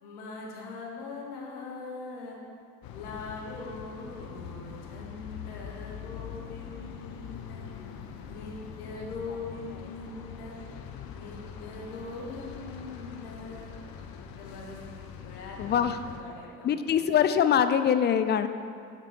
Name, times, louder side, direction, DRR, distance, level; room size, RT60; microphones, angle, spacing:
voice 1, 0.0-2.4 2.9-7.6 8.3-10.5 11.1-13.7 14.4-14.8 15.2-16.7, left 3 dB, 75° left, -2 dB, 1.5 m, -41 dB
sound 1, 2.8-16.2, left 7 dB, 50° left, 0.8 m, -43 dB
voice 2, 15.6-16.0 16.6-18.5, left 8 dB, 25° left, 10 dB, 0.4 m, -23 dB
8.7 x 4.4 x 5.4 m, 2.3 s
figure-of-eight pair, 55°, 44 cm